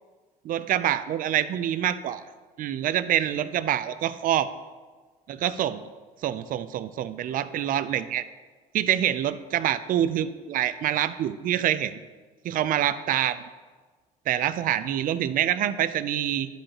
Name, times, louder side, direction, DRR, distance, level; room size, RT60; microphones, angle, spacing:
voice 1, 0.4-2.2 2.6-4.5 5.3-5.8 6.2-8.2 8.7-12.0 12.4-13.4 14.3-16.5, right 11 dB, 55° right, 13 dB, 0.4 m, -26 dB
11.5 x 5.3 x 2.9 m, 1.4 s
cardioid pair, 110°, 17 cm